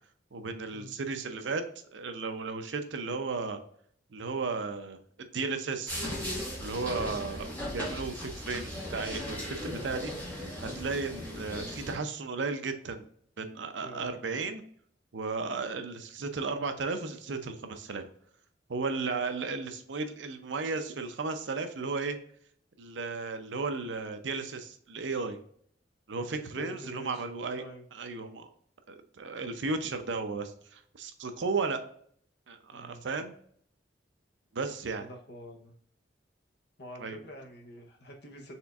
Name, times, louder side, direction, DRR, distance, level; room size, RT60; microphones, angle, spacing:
voice 1, 0.3-1.6 1.9-3.6 4.1-6.0 6.6-7.5 7.7-13.1 13.4-14.6 15.1-18.1 18.7-22.2 22.8-25.4 26.1-27.6 27.9-28.5 28.9-31.8 32.5-33.4 34.5-35.1 37.0-37.2, right 4 dB, 75° right, 7 dB, 0.6 m, -34 dB
sound 1, 5.9-12.0, left 1 dB, 10° left, 1.3 m, -37 dB
voice 2, 13.8-14.2 26.3-27.2 27.5-27.8 32.7-33.2 35.0-35.7 36.8-38.5, equal, 60° left, 2 dB, 0.9 m, -46 dB
4.3 x 3.4 x 2.4 m, 0.62 s
head